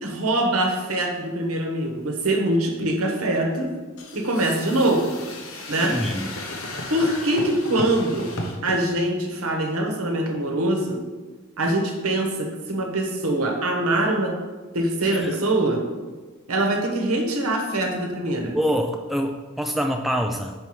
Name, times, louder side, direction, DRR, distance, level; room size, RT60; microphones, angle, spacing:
voice 1, 0.0-3.7 4.1-5.0 5.7-5.9 6.9-8.3 8.6-11.0 11.6-14.3 14.7-15.8 16.5-18.5, right 1 dB, 75° right, 2 dB, 1.1 m, -23 dB
sound 1, 4.0-8.8, left 1 dB, 65° left, 1.0 m, -34 dB
voice 2, 5.8-6.3 15.0-15.4 18.5-20.5, equal, ahead, 3 dB, 0.3 m, -25 dB
5.6 x 5.3 x 4.7 m, 1.3 s
head